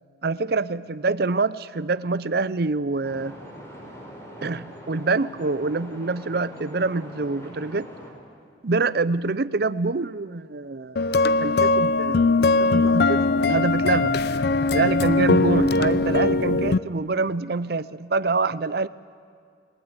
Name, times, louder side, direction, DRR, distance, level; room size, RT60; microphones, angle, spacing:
voice 1, 0.2-3.3 4.4-7.9 8.6-11.0 11.4-14.1 14.7-18.9, right 3 dB, 60° right, 17 dB, 0.7 m, -26 dB
sound 1, 3.0-8.1, equal, 15° left, 5.4 m, -42 dB
sound 2, 11.0-16.8, left 3 dB, 60° left, 0.7 m, -20 dB
28.5 x 20.0 x 9.7 m, 2.2 s
head